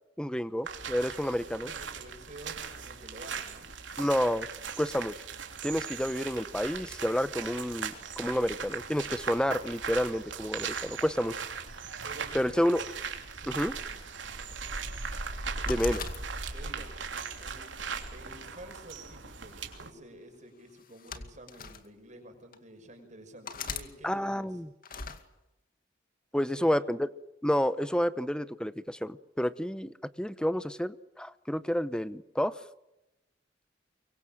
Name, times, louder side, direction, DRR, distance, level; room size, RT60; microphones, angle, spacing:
voice 1, 0.2-1.7 4.0-4.5 4.8-5.1 5.6-11.3 12.3-12.8 13.6-13.7 15.7-16.0 24.0-24.7 26.3-27.0 27.4-32.6, equal, 5° left, 14 dB, 0.9 m, -29 dB
sound 1, 0.7-19.9, right 5 dB, 85° right, 3.2 m, -38 dB
voice 2, 1.6-3.8 8.4-8.6 12.0-12.8 13.3-13.6 16.5-16.9 17.4-24.6 26.3-26.9, right 1 dB, 40° right, 5 dB, 6.0 m, -50 dB
sound 2, 15.7-16.7 17.4-18.5 19.5-19.8 20.8-21.8 22.5-22.6 23.5-23.9 24.8-25.2, left 6 dB, 50° left, 2.3 m, -40 dB
24.5 x 23.5 x 7.5 m, 0.94 s
head